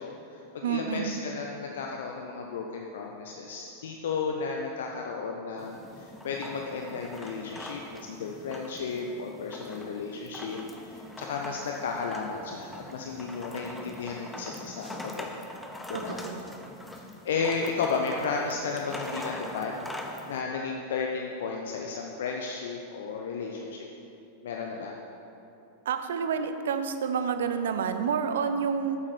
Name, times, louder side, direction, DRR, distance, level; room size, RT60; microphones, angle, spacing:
voice 1, 0.0-15.4 15.9-16.2 16.9-19.8 20.3-23.9 24.4-24.9, left 5 dB, 60° left, 1 dB, 0.6 m, -34 dB
voice 2, 0.6-1.2 15.9-16.5 25.9-29.0, right 6 dB, 60° right, 8 dB, 0.5 m, -29 dB
sound 1, 5.6-20.4, left 1 dB, 5° left, 0.8 m, -42 dB
8.6 x 7.2 x 5.0 m, 2.9 s
figure-of-eight pair, 90°, 0 cm